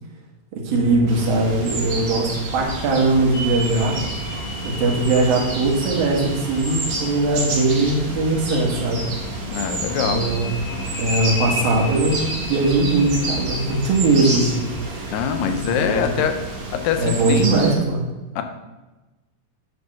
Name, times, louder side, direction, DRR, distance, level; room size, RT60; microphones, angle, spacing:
voice 1, 0.6-4.0 4.6-9.1 10.0-10.5 11.0-15.2 15.7-16.2 17.0-18.0, right 2 dB, 80° right, -1 dB, 3.4 m, -20 dB
sound 1, 0.7-16.7, right 2 dB, 65° right, 1.9 m, -37 dB
sound 2, 1.1-17.7, right 1 dB, 45° right, 3.4 m, -30 dB
sound 3, 3.3-8.9 10.2-15.0, left 1 dB, 60° left, 2.7 m, -35 dB
voice 2, 9.5-10.2 15.1-16.4 16.7-17.4 18.4-18.5, left 8 dB, 80° left, 7 dB, 2.5 m, -23 dB
9.9 x 4.9 x 6.0 m, 1.1 s
omnidirectional pair, 4.1 m